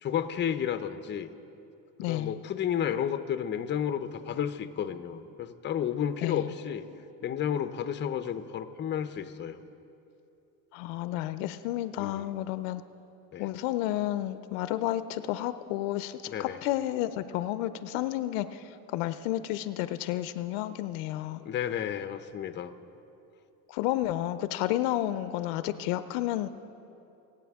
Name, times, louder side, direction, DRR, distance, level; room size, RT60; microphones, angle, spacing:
voice 1, 0.0-1.3 2.0-6.8 7.2-9.6 12.0-12.3 13.3-13.5 16.3-16.6 21.4-22.7, left 9 dB, 30° left, 10 dB, 0.6 m, -32 dB
voice 2, 2.0-2.4 6.2-6.5 10.7-12.8 13.4-21.4 23.7-26.5, left 14 dB, 90° left, 13 dB, 0.6 m, -31 dB
24.0 x 8.1 x 3.6 m, 2.9 s
cardioid pair, 115°, 36 cm